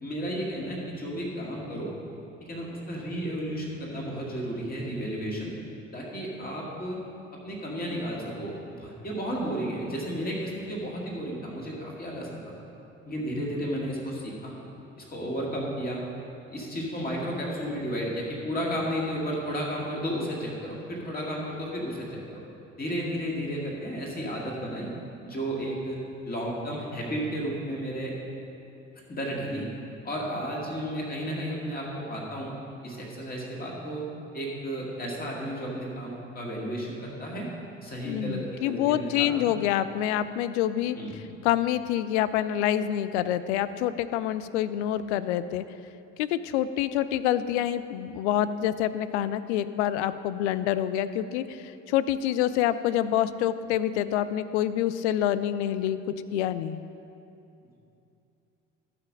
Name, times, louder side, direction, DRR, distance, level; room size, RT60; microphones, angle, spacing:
voice 1, 0.0-1.9 2.4-5.5 5.9-7.0 7.4-12.5 13.1-14.5 15.0-16.0 16.5-22.4 22.8-24.9 25.2-26.0 26.2-28.1 29.1-29.6 30.0-32.5 32.8-34.0 34.3-37.5 37.8-39.3 40.9-41.1, equal, 25° left, -3 dB, 2.2 m, -33 dB
voice 2, 38.0-41.0 41.4-45.6 46.2-56.0 56.3-56.8, left 11 dB, 65° left, 13 dB, 0.5 m, -27 dB
12.5 x 5.9 x 5.2 m, 2.7 s
figure-of-eight pair, 55°, 37 cm